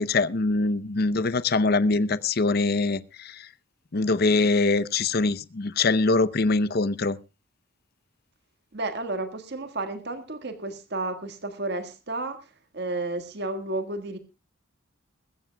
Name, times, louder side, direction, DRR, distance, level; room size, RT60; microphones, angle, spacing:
voice 1, 0.0-3.5 3.9-7.2, left 3 dB, 50° left, 0.7 m, -23 dB
voice 2, 8.7-14.2, right 2 dB, 55° right, 1.7 m, -32 dB
21.0 x 15.0 x 2.2 m
head